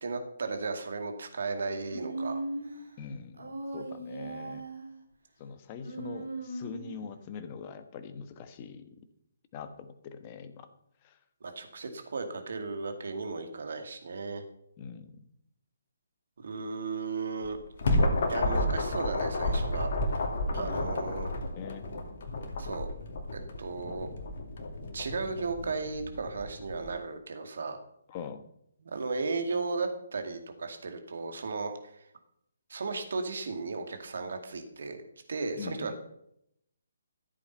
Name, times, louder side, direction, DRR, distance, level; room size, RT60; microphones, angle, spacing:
voice 1, 0.0-2.4 11.4-14.4 16.4-17.6 18.3-19.9 20.5-21.3 22.6-22.9 23.6-24.1 24.9-27.8 28.9-31.7 32.7-35.0 35.3-36.0, right 4 dB, 55° right, 6 dB, 2.2 m, -35 dB
Human voice, 1.9-2.8 3.4-4.9 5.8-7.1, right 2 dB, 75° right, 3.9 m, -38 dB
voice 2, 3.0-4.6 5.4-9.0 9.5-10.7 11.0-11.2 14.8-15.2 20.5-20.9 21.5-21.9 28.1-28.5 35.5-36.0, left 6 dB, 30° left, 10 dB, 1.3 m, -43 dB
sound 1, 17.4-26.9, left 1 dB, 50° left, 2.3 m, -31 dB
14.5 x 8.4 x 5.6 m, 0.74 s
figure-of-eight pair, 140°, 0 cm